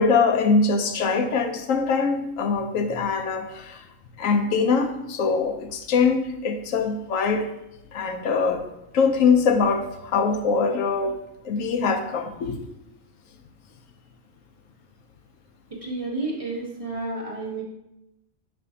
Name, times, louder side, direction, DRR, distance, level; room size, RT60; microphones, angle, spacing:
voice 1, 0.0-3.8 4.2-7.5 7.9-8.7 8.9-11.2 11.4-12.6, left 4 dB, 85° left, 5 dB, 1.0 m, -23 dB
voice 2, 15.8-17.6, right 2 dB, 30° right, -3 dB, 1.1 m, -30 dB
6.1 x 5.7 x 2.7 m, 0.87 s
omnidirectional pair, 1.3 m